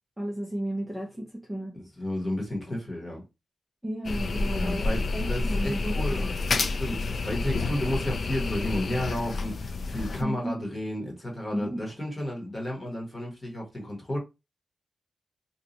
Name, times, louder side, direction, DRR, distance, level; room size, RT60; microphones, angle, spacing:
voice 1, 0.2-1.8 3.8-6.3 10.2-10.6 11.5-11.8, right 1 dB, 5° right, 0.5 m, -33 dB
voice 2, 2.0-3.2 4.4-14.2, left 1 dB, 20° left, 1.2 m, -32 dB
sound 1, 4.0-10.2, left 3 dB, 45° left, 0.3 m, -29 dB
2.7 x 2.3 x 3.9 m
wide cardioid pair, 160°, 0 cm